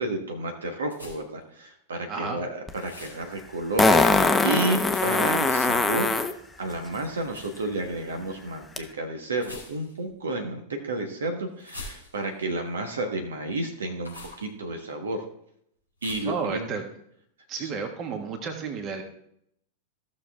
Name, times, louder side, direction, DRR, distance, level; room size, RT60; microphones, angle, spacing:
voice 1, 0.0-4.1 4.4-6.2 6.6-15.2 16.0-16.7 17.6-17.7, right 2 dB, 70° right, 4 dB, 1.3 m, -31 dB
sound 1, 0.9-1.4 2.8-3.2 4.9-5.3 7.3-7.5 9.3-10.1 11.6-12.4 14.0-14.5 16.0-16.4, left 2 dB, 85° right, 4.0 m, -43 dB
voice 2, 2.1-2.4 16.2-16.9 17.5-19.0, right 5 dB, 35° right, 6 dB, 1.7 m, -32 dB
Fart, 2.7-2.8 3.8-6.3 8.8-8.9, left 3 dB, 5° left, 0.9 m, -21 dB
15.0 x 6.4 x 3.6 m, 0.72 s
figure-of-eight pair, 90°, 0 cm